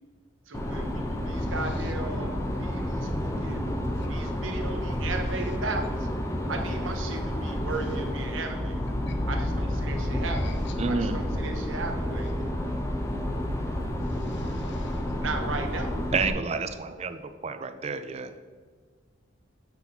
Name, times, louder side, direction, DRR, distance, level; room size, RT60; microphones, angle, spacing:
sound 1, 0.5-16.3, left 1 dB, 15° left, 0.7 m, -30 dB
voice 1, 0.5-3.8 4.1-6.1 6.5-8.8 9.3-12.5 15.2-15.9, right 3 dB, 75° right, 4 dB, 1.0 m, -36 dB
voice 2, 10.8-11.3 16.1-18.4, right 4 dB, 30° right, 10 dB, 0.4 m, -30 dB
voice 3, 14.1-15.0, left 5 dB, 55° left, 6 dB, 0.5 m, -48 dB
8.0 x 4.1 x 4.4 m, 1.5 s
head